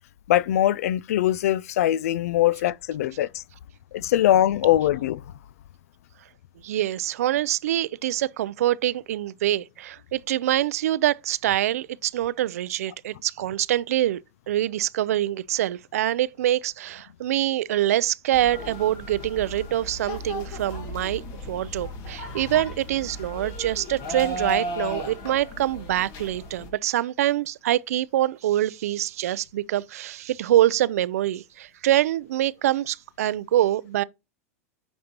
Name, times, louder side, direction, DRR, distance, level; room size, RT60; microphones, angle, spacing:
voice 1, 0.3-3.4 3.9-5.2, left 13 dB, 80° left, 0.3 m, -22 dB
voice 2, 6.6-14.2 14.5-21.2 21.5-34.0, right 13 dB, 85° right, 0.4 m, -25 dB
sound 1, 18.3-26.7, equal, 50° left, 1.7 m, -35 dB
8.8 x 5.2 x 2.9 m
supercardioid pair, 125°, 8 cm